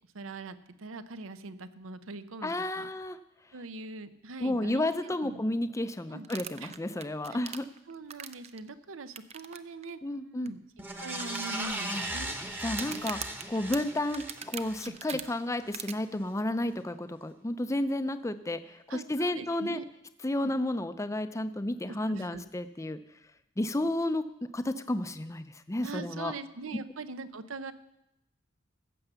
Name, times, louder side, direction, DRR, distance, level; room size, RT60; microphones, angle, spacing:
voice 1, 0.1-2.9 3.5-5.4 6.1-6.3 6.6-6.7 7.3-7.4 7.9-10.6 11.0-12.4 14.8-15.2 18.9-19.8 20.4-20.5 21.9-22.4 25.8-27.7, right 3 dB, 80° right, 12 dB, 0.7 m, -42 dB
voice 2, 2.4-3.2 4.4-7.6 10.0-10.5 11.9-12.0 12.6-13.2 13.5-19.8 20.2-23.0 23.6-24.2 24.5-26.3, left 1 dB, 15° left, 11 dB, 0.5 m, -32 dB
sound 1, 6.2-8.6 9.2-9.6 9.8-9.9 10.5-10.6 11.2-12.0 12.7-15.2 15.7-15.9, right 8 dB, 30° right, 0.5 m, -41 dB
sound 2, 10.8-15.3 15.7-15.8, right 1 dB, 10° right, 1.0 m, -38 dB
15.5 x 6.9 x 6.9 m, 0.85 s
head